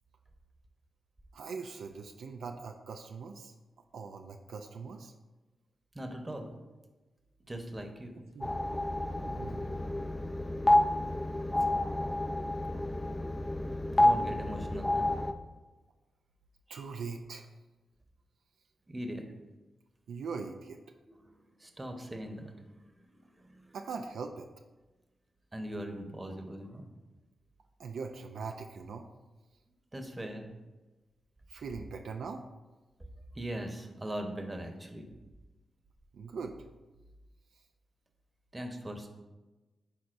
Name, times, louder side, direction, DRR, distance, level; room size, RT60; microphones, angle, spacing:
voice 1, 1.3-3.5 3.9-5.1 8.3-8.5 9.2-9.7 16.7-17.5 20.1-20.8 23.7-24.5 27.8-29.1 31.5-32.4 36.1-36.6, right 5 dB, 80° right, 4 dB, 0.4 m, -41 dB
voice 2, 5.9-6.5 7.5-8.2 9.9-10.0 14.0-15.2 16.7-16.9 18.9-19.3 21.1-21.3 21.6-23.8 25.5-26.8 29.9-30.5 33.3-35.1 38.5-39.1, right 1 dB, 20° right, 5 dB, 1.0 m, -40 dB
sound 1, 8.4-15.3, left 1 dB, 25° left, 0.5 m, -29 dB
10.5 x 4.1 x 2.6 m, 1.2 s
cardioid pair, 50°, 0 cm